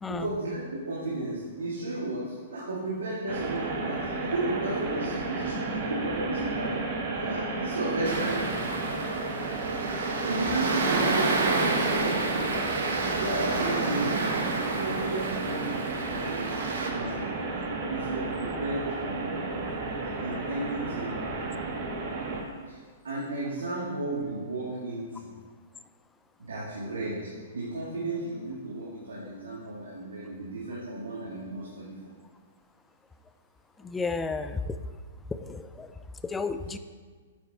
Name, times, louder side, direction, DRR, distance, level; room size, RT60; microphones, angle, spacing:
voice 1, 0.1-6.9 7.1-8.4 10.2-12.2 13.0-14.2 14.8-19.9 20.2-21.5 22.7-22.8 23.0-25.3 26.4-31.9, right 2 dB, 85° right, -6 dB, 2.2 m, -34 dB
sound 1, 3.3-22.4, right 3 dB, 45° right, 1.8 m, -33 dB
sound 2, 8.0-16.9, right 3 dB, 70° right, 1.6 m, -30 dB
voice 2, 33.8-34.8 35.4-35.9 36.2-36.8, left 4 dB, 10° left, 11 dB, 0.5 m, -32 dB
9.1 x 7.7 x 4.3 m, 1.5 s
hypercardioid pair, 130°, 0 cm